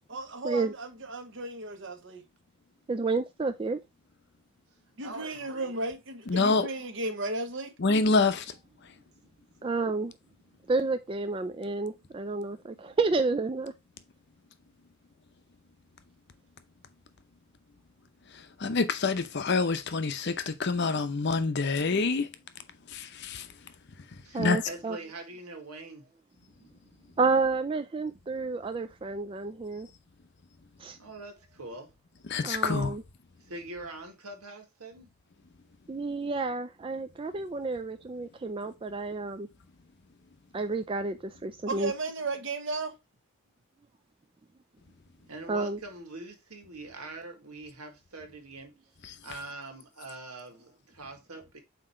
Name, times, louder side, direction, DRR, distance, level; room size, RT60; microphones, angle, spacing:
voice 1, 0.1-2.2 5.0-7.7 41.7-43.0, right 2 dB, 55° right, 1.1 m, -35 dB
voice 2, 2.9-3.8 9.6-10.1 10.7-13.7 24.3-25.0 27.2-29.9 30.8-31.0 32.4-33.0 35.9-39.5 40.5-41.9 45.5-45.8, right 3 dB, 25° right, 0.3 m, -30 dB
voice 3, 5.0-6.0 24.2-26.1 31.0-31.9 33.4-35.1 45.3-48.7 49.2-51.6, right 2 dB, 90° right, 1.8 m, -43 dB
voice 4, 6.3-6.7 7.8-8.5 18.3-22.3 22.9-23.5 24.4-24.7 32.3-32.9, left 4 dB, 50° left, 0.7 m, -26 dB
7.6 x 3.0 x 4.3 m
head